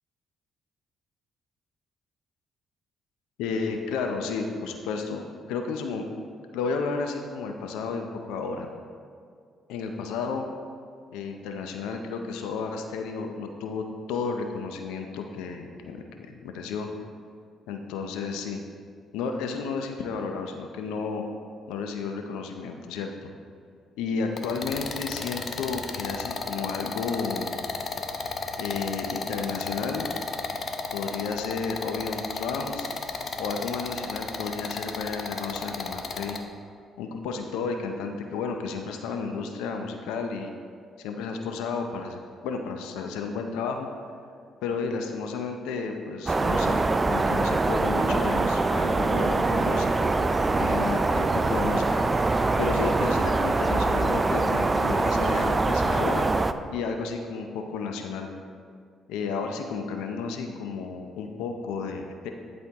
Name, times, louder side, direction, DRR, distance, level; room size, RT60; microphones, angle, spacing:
voice 1, 3.4-6.0 6.5-8.7 9.7-10.5 11.1-16.9 17.7-18.6 19.1-21.2 21.7-23.3 24.0-27.6 28.6-30.1 30.9-32.9 33.4-36.4 37.0-40.5 41.0-43.9 44.6-46.8 47.1-50.1 50.6-52.1 52.6-56.3 56.7-58.3 59.1-62.3, left 5 dB, 90° left, 4 dB, 0.5 m, -32 dB
sound 1, 24.4-36.4, left 4 dB, 55° left, 0.7 m, -33 dB
sound 2, 46.3-56.5, right 3 dB, 30° right, 0.3 m, -24 dB
11.0 x 4.4 x 3.5 m, 2.2 s
supercardioid pair, 65°, 0 cm